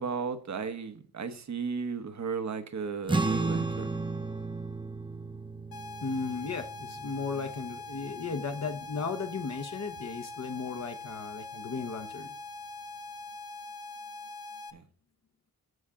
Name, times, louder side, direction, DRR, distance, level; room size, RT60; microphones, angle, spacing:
voice 1, 0.0-4.0 14.7-14.8, right 5 dB, 50° right, 1.1 m, -35 dB
sound 1, 3.1-9.7, right 3 dB, 15° right, 0.6 m, -35 dB
sound 2, 5.7-14.7, left 2 dB, 85° left, 0.9 m, -43 dB
voice 2, 6.0-12.3, left 5 dB, 50° left, 1.0 m, -35 dB
14.5 x 5.8 x 3.7 m
wide cardioid pair, 160°, 35 cm